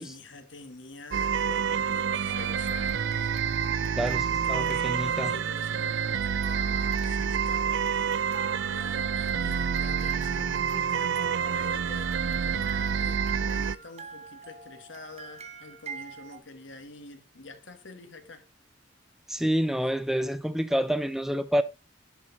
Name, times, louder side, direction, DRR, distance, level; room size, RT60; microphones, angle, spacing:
voice 1, 0.0-3.3 4.1-18.5, left 3 dB, 70° left, 1.4 m, -47 dB
sound 1, 1.1-13.8, right 7 dB, 65° right, 0.4 m, -28 dB
sound 2, 2.3-5.7 6.4-16.4, right 5 dB, 35° right, 0.9 m, -46 dB
voice 2, 4.0-5.3 19.3-21.6, equal, ahead, 0.4 m, -28 dB
10.5 x 4.4 x 4.0 m
head